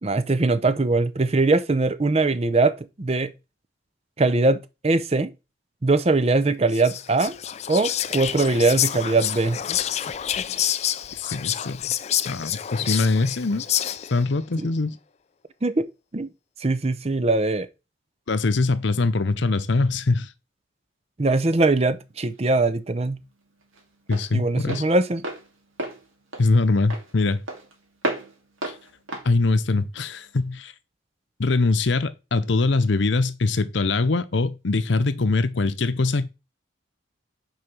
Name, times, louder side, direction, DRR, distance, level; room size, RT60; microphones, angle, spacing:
voice 1, 0.0-3.3 4.2-5.3 5.8-7.4 7.7-9.6 14.6-14.7 15.6-15.9 16.1-16.3 16.6-17.7 21.2-23.2 24.3-25.2, right 3 dB, 30° right, 0.5 m, -21 dB
Whispering, 6.7-14.3, left 11 dB, 35° left, 0.3 m, -28 dB
voice 2, 11.2-11.9 12.2-13.6 14.1-14.9 18.3-20.3 24.1-24.8 26.4-27.4 28.7-28.8 29.2-30.7 31.4-36.3, left 3 dB, 65° left, 0.7 m, -22 dB
Walk footsteps, 21.8-30.5, right 1 dB, 85° right, 2.6 m, -35 dB
6.4 x 4.9 x 6.1 m
head